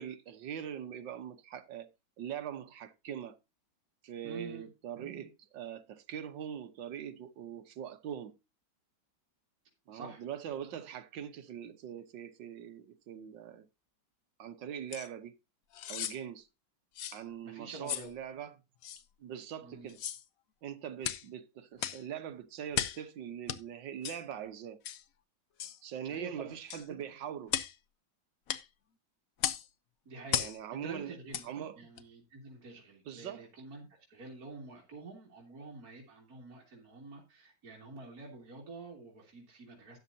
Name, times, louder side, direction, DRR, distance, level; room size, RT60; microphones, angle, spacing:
voice 1, 0.0-1.9 2.2-3.4 4.0-8.4 9.9-13.7 14.4-15.4 15.9-16.5 17.1-18.6 19.2-20.0 20.6-24.8 25.8-27.6 30.4-31.2 31.4-31.8 33.0-33.5, right 9 dB, 70° right, 1.6 m, -42 dB
voice 2, 4.2-4.7 9.9-10.2 17.4-18.1 19.6-19.9 26.1-26.6 30.1-31.4 31.8-40.0, right 3 dB, 50° right, 2.9 m, -48 dB
sound 1, 14.9-15.1 15.7-16.2 17.0-17.2 17.9-18.1 18.8-19.0 19.9-20.2 21.0-21.3 21.8-22.0 22.7-23.0 23.5-23.6 24.0-24.2 24.8-25.0 25.6-25.8 26.7-26.9 27.5-27.8 28.5-28.7 29.4-29.7 30.3-30.6 31.3-31.5 32.0-32.1, left 10 dB, 65° left, 0.9 m, -35 dB
13.0 x 9.1 x 2.7 m
omnidirectional pair, 2.1 m